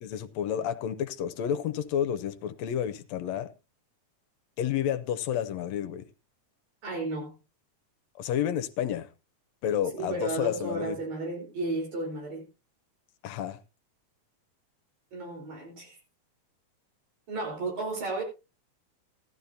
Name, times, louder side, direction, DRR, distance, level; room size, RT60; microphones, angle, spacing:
voice 1, 0.0-3.5 4.6-6.1 8.2-9.1 9.6-11.0 13.2-13.6, left 9 dB, 70° left, 1.9 m, -30 dB
voice 2, 6.8-7.4 9.9-12.5 15.1-16.0 17.3-18.2, right 2 dB, 70° right, 5.6 m, -33 dB
15.0 x 12.5 x 2.7 m
omnidirectional pair, 3.4 m